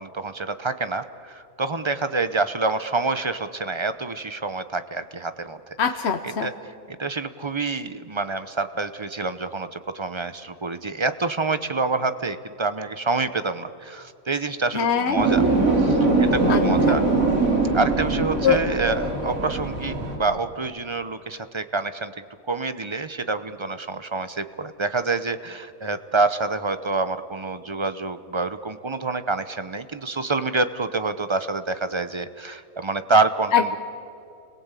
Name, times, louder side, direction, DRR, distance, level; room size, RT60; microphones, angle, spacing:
voice 1, 0.0-5.6 6.2-15.4 15.8-17.1 17.7-22.1 22.5-33.8, right 3 dB, 25° right, 11 dB, 0.7 m, -27 dB
voice 2, 5.8-6.5 14.7-15.2 16.5-16.9 18.4-18.6 33.5-33.8, left 7 dB, 55° left, 6 dB, 1.1 m, -22 dB
sound 1, 15.1-20.1, right 3 dB, 75° right, 3.7 m, -21 dB
30.0 x 21.5 x 8.3 m, 2.7 s
omnidirectional pair, 1.4 m